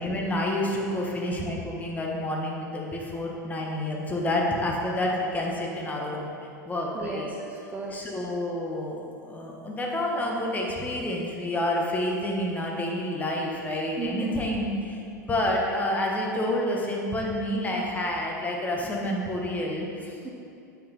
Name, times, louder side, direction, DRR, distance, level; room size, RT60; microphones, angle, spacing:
voice 1, 0.0-6.3 6.6-7.3 7.9-20.2, left 1 dB, 15° left, -1 dB, 1.4 m, -29 dB
voice 2, 6.9-8.1 14.0-14.4 20.2-20.3, right 4 dB, 15° right, -2 dB, 0.8 m, -34 dB
9.2 x 6.1 x 4.2 m, 2.6 s
figure-of-eight pair, 85°, 10 cm